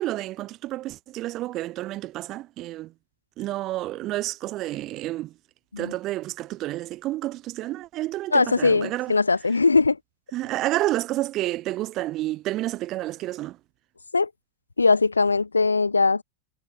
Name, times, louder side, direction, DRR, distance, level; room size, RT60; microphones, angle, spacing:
voice 1, 0.0-2.9 3.4-5.3 5.8-9.1 10.3-13.6, right 16 dB, 35° right, 4.6 m, -30 dB
voice 2, 8.3-10.0 14.1-14.3 14.8-16.2, left 4 dB, 80° left, 4.8 m, -20 dB
figure-of-eight pair, 90°, 0 cm